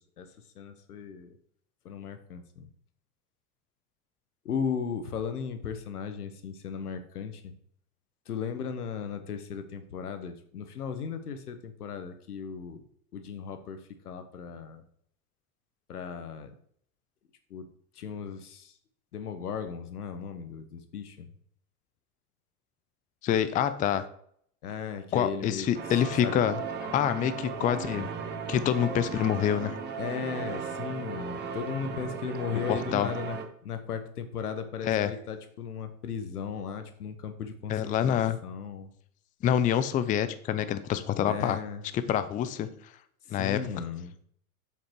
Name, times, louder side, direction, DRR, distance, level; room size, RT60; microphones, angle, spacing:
voice 1, 0.2-1.4 1.8-2.7 4.4-7.5 8.3-12.8 13.1-14.8 15.9-16.5 17.5-17.7 17.9-18.7 19.1-21.3 24.6-25.7 26.2-26.3 30.0-33.4 33.6-38.2 38.4-38.9 41.3-41.8 43.3-44.2, left 6 dB, 85° left, 9 dB, 1.3 m, -36 dB
voice 2, 23.2-24.0 25.1-26.6 26.9-28.1 28.5-29.8 32.7-33.1 34.8-35.1 37.7-38.4 39.4-41.6 42.1-42.7 43.3-43.6, left 10 dB, 20° left, 12 dB, 0.5 m, -26 dB
sound 1, 25.7-33.4, right 5 dB, 25° right, 1.2 m, -36 dB
7.4 x 5.9 x 4.6 m, 0.63 s
hypercardioid pair, 105°, 45 cm